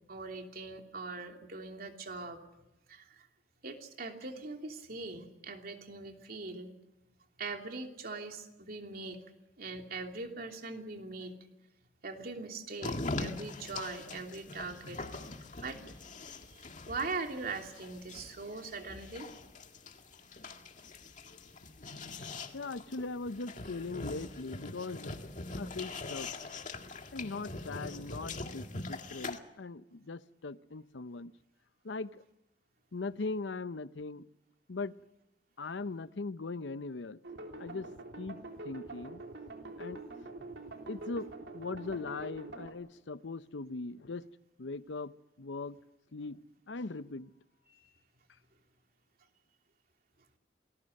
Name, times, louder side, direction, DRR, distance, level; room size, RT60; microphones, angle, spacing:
voice 1, 0.1-2.4 2.9-3.3 3.6-6.7 7.4-9.2 9.6-11.4 12.0-15.1 15.6-15.8 16.9-19.3 47.7-47.9, right 3 dB, 55° right, 3 dB, 3.0 m, -41 dB
sound 1, 12.8-29.4, left 3 dB, 45° left, 1.9 m, -42 dB
voice 2, 22.5-25.1 25.6-26.3 27.1-31.3 31.8-32.2 32.9-34.2 34.7-35.0 35.6-37.2 37.6-37.9 38.2-38.4 38.6-39.2 39.8-40.0 40.9-44.3 44.6-45.8 46.1-46.4 46.7-47.3, left 3 dB, 90° left, 15 dB, 0.7 m, -40 dB
sound 2, 37.2-42.7, right 2 dB, 75° right, 3.5 m, -45 dB
28.5 x 20.0 x 6.6 m, 0.93 s
head